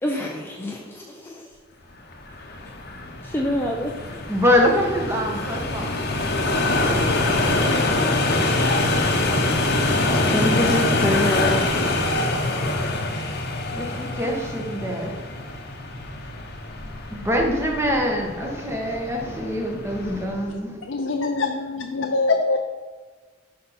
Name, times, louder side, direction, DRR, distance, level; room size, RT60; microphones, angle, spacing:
voice 1, 0.0-1.5 3.2-4.1 10.2-11.7, left 1 dB, 10° left, -1 dB, 0.6 m, -26 dB
sound 1, 2.1-20.4, left 2 dB, 55° left, 1.0 m, -25 dB
voice 2, 4.3-6.0 6.9-7.6 9.9-10.8 13.7-15.1 17.1-20.8, left 1 dB, 15° right, 0 dB, 1.4 m, -25 dB
voice 3, 20.8-22.6, left 3 dB, 80° left, 3 dB, 0.6 m, -24 dB
9.9 x 5.5 x 4.2 m, 1.4 s
head